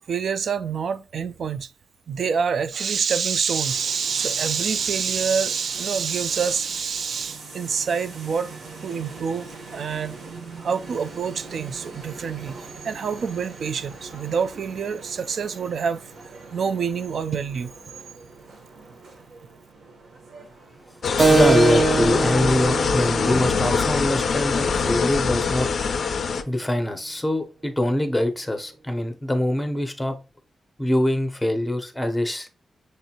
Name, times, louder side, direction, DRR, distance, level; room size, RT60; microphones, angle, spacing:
voice 1, 0.1-1.7 2.1-8.5 8.8-10.2 10.6-16.0 16.5-17.7, right 6 dB, 55° right, 0.3 m, -26 dB
sound 1, 3.6-21.8, right 3 dB, 75° right, 1.0 m, -42 dB
sound 2, 21.0-26.4, left 5 dB, 50° left, 0.4 m, -23 dB
Keyboard (musical), 21.2-26.3, right 3 dB, 30° right, 0.8 m, -24 dB
voice 2, 21.3-25.7 26.5-30.2 30.8-32.5, left 1 dB, 5° left, 0.6 m, -24 dB
6.4 x 2.6 x 2.8 m
wide cardioid pair, 175°, 0 cm